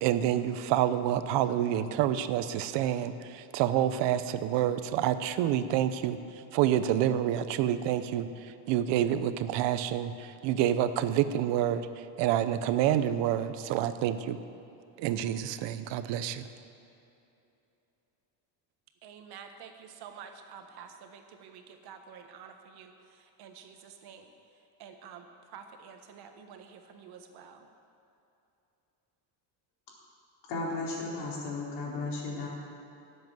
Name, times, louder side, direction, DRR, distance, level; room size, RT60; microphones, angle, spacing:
voice 1, 0.0-11.9 12.2-14.4 15.0-16.4, right 11 dB, 75° right, 12 dB, 0.9 m, -28 dB
voice 2, 19.0-24.3 24.8-27.7, right 7 dB, 60° right, 6 dB, 1.4 m, -49 dB
voice 3, 30.5-32.5, left 3 dB, 65° left, -4 dB, 4.3 m, -34 dB
18.0 x 7.9 x 7.9 m, 2.9 s
cardioid pair, 180°, 43 cm